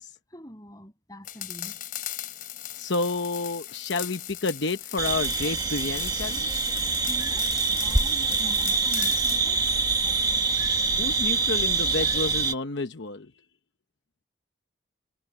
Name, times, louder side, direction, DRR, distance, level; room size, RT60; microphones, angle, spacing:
voice 1, 0.3-1.8 7.1-7.5 7.8-10.1, equal, 20° left, 7.5 m, -45 dB
sound 1, 1.2-9.4, left 12 dB, 45° left, 3.4 m, -38 dB
voice 2, 2.8-6.7 11.0-13.3, left 3 dB, 65° left, 0.9 m, -30 dB
sound 2, 5.0-12.5, right 4 dB, 20° right, 1.7 m, -25 dB
head